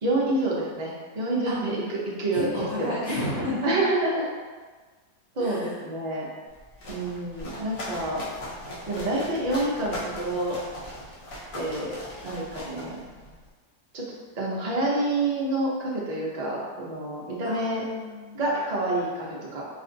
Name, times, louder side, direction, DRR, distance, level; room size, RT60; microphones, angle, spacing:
voice 1, 0.0-3.0 3.6-4.3 5.3-6.3 6.9-8.3 8.9-10.6 11.5-12.0 12.2-13.0 13.9-14.0 14.4-17.8 18.3-19.7, right 2 dB, 45° right, -5 dB, 0.5 m, -28 dB
voice 2, 2.3-3.8 5.4-5.8 17.4-18.5, left 1 dB, 80° left, -9 dB, 2.1 m, -32 dB
sound 1, 6.5-13.5, equal, 55° left, 1.2 m, -39 dB
4.1 x 2.5 x 3.8 m, 1.4 s
omnidirectional pair, 1.8 m